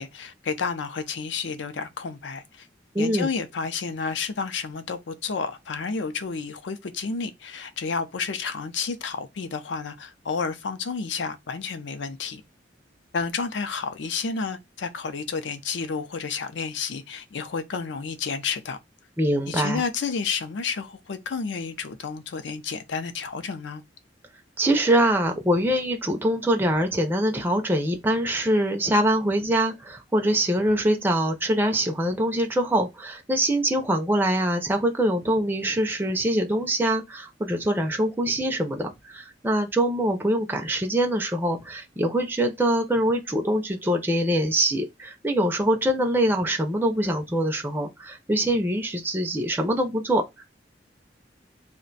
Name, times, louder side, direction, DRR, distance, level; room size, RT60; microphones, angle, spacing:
voice 1, 0.0-2.7 3.0-12.4 13.1-18.8 19.5-23.8, left 5 dB, 75° left, 0.5 m, -31 dB
voice 2, 2.9-3.3 19.2-19.8 24.6-50.4, right 1 dB, 10° right, 0.4 m, -24 dB
2.5 x 2.1 x 3.8 m
head